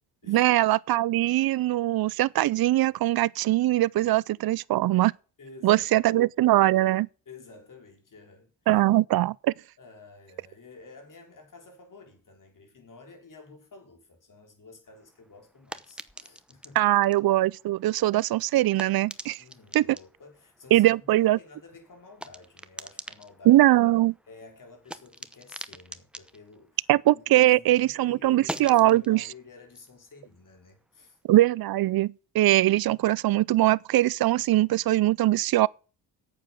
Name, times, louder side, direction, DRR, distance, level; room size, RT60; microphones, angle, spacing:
voice 1, 0.3-5.1 5.6-7.1 8.7-9.5 16.8-19.4 19.7-19.9 20.7-21.4 23.5-24.1 26.9-29.2 31.3-35.7, right 15 dB, 55° right, 0.5 m, -21 dB
voice 2, 5.4-6.3 7.3-8.5 9.8-16.9 19.4-23.7 24.3-26.8 27.1-31.2, left 4 dB, 45° left, 4.0 m, -50 dB
sound 1, 14.9-27.6 27.9-31.2, right 1 dB, ahead, 0.8 m, -45 dB
8.9 x 7.9 x 7.0 m
cardioid pair, 85°, 45 cm